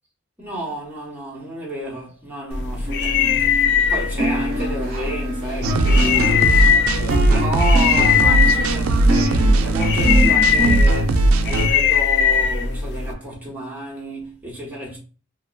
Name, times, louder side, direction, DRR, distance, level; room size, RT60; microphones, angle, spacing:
voice 1, 0.4-15.0, right 1 dB, 10° right, 1.0 m, -31 dB
sound 1, 2.5-13.1, left 7 dB, 55° left, 0.3 m, -20 dB
sound 2, 2.9-3.9 4.2-10.8, equal, 50° right, 1.0 m, -26 dB
sound 3, 5.6-11.7, right 2 dB, 80° right, 0.3 m, -18 dB
2.9 x 2.2 x 2.2 m
head